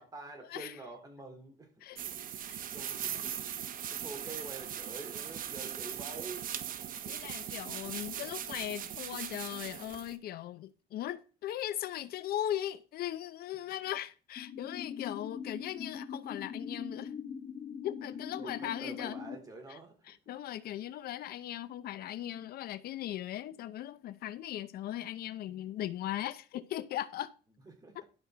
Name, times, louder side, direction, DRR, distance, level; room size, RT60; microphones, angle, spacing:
voice 1, 0.0-1.9 2.7-3.4 3.9-6.5 8.2-8.3 18.4-20.1 27.6-28.0, right 3 dB, 20° right, 3.3 m, -47 dB
voice 2, 1.8-2.6 7.0-17.1 17.8-19.2 19.7-19.8 20.1-27.3 27.9-28.0, left 12 dB, 65° left, 0.6 m, -39 dB
sound 1, 2.0-10.2, right 9 dB, 55° right, 1.0 m, -40 dB
sound 2, 14.4-19.4, left 6 dB, 40° left, 2.8 m, -42 dB
12.0 x 5.9 x 3.9 m
cardioid pair, 110°, 17 cm